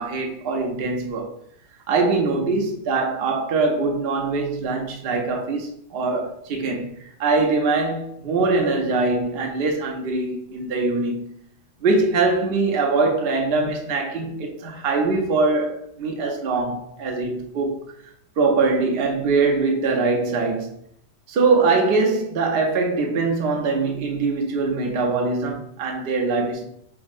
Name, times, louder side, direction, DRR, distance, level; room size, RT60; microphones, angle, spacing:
voice 1, 0.0-1.3 1.9-11.3 11.8-17.9 18.4-20.8 21.3-26.6, right 3 dB, 60° right, 0.6 m, -22 dB
6.0 x 2.0 x 2.4 m
omnidirectional pair, 1.8 m